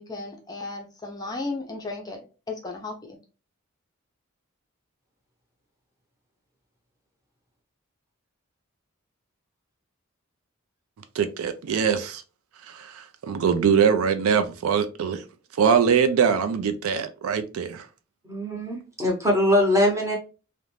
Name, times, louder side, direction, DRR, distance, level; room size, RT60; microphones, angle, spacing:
voice 1, 0.0-3.2, left 3 dB, 20° left, 0.4 m, -35 dB
voice 2, 11.2-12.2 12.7-15.2 15.6-17.9, right 7 dB, 80° right, 0.4 m, -22 dB
voice 3, 18.3-20.2, left 1 dB, 15° right, 0.7 m, -22 dB
2.4 x 2.1 x 3.0 m
head